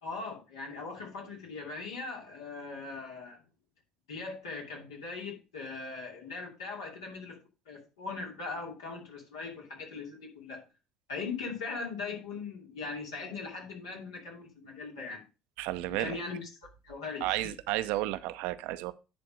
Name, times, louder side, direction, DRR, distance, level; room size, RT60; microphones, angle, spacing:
voice 1, 0.0-3.4 4.1-10.6 11.1-15.2 15.8-16.5 16.8-17.5, left 4 dB, 80° left, 2.6 m, -40 dB
voice 2, 15.6-16.2 17.2-18.9, right 16 dB, 70° right, 0.6 m, -32 dB
10.0 x 3.5 x 6.1 m
hypercardioid pair, 60°, 3 cm